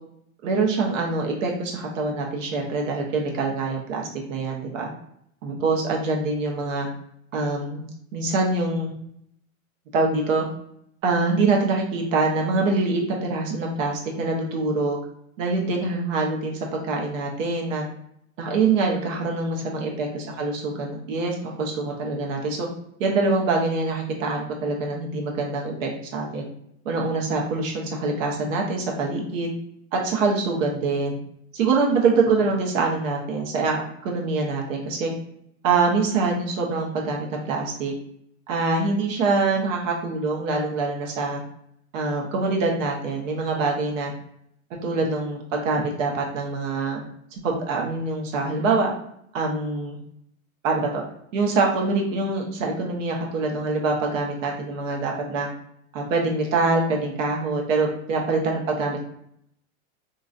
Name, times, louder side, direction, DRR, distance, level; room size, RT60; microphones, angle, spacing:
voice 1, 0.4-4.9 5.4-6.9 7.3-7.8 8.1-8.9 9.9-10.5 11.0-15.0 15.4-17.8 18.4-22.7 23.0-26.5 26.8-29.5 29.9-31.2 31.5-35.1 35.6-37.9 38.5-41.4 41.9-44.1 44.8-47.0 47.4-48.9 49.3-50.0 50.6-51.0 51.3-55.5 55.9-59.0, right 3 dB, 65° right, 0 dB, 1.0 m, -24 dB
2.9 x 2.6 x 2.4 m, 0.72 s
hypercardioid pair, 105°, 42 cm